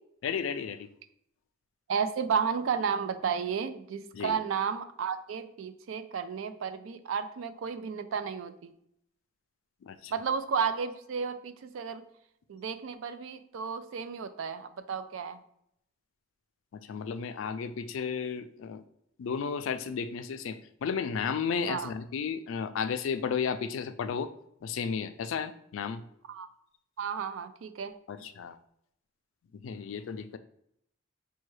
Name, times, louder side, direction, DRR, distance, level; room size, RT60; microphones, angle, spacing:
voice 1, 0.2-0.9 4.1-4.4 9.8-10.1 16.7-18.8 19.2-24.3 24.6-26.0 28.1-28.6 29.5-30.4, left 6 dB, 85° left, 10 dB, 0.3 m, -33 dB
voice 2, 1.9-8.7 10.1-12.0 12.5-15.4 21.6-21.9 26.3-26.5 27.0-27.9, right 6 dB, 90° right, 11 dB, 0.4 m, -33 dB
5.4 x 2.2 x 3.1 m, 0.73 s
head